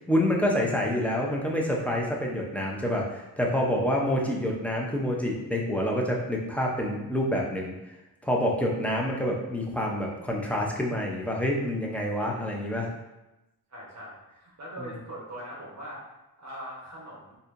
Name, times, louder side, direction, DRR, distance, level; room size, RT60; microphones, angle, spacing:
voice 1, 0.1-7.7 8.2-12.9, equal, 5° left, -2 dB, 0.6 m, -27 dB
voice 2, 13.7-16.0 16.4-17.4, equal, 40° right, -5 dB, 1.1 m, -41 dB
4.1 x 2.7 x 2.5 m, 0.99 s
wide cardioid pair, 85°, 41 cm